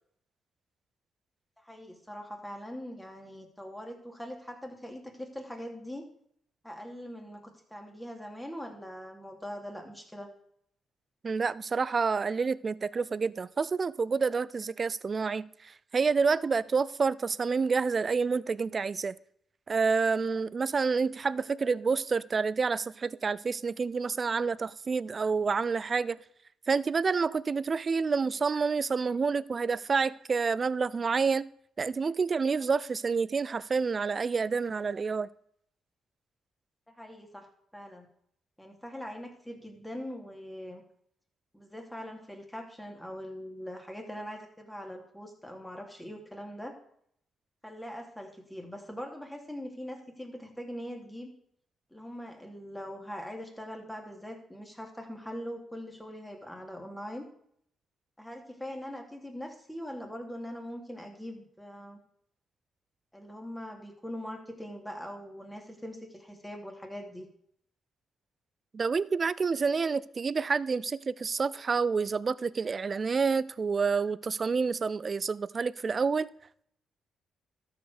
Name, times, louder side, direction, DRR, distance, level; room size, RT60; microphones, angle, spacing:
voice 1, 1.6-6.1 6.6-10.3 36.9-37.5 37.7-38.1 38.6-40.8 41.5-46.7 47.6-51.3 51.9-57.3 58.2-62.0 63.1-67.3, equal, 5° left, 2.8 m, -42 dB
voice 2, 11.2-19.2 19.7-26.2 26.7-31.5 31.8-35.3 68.7-76.3, right 5 dB, 45° right, 0.4 m, -28 dB
12.5 x 5.0 x 6.6 m
supercardioid pair, 55°, 0 cm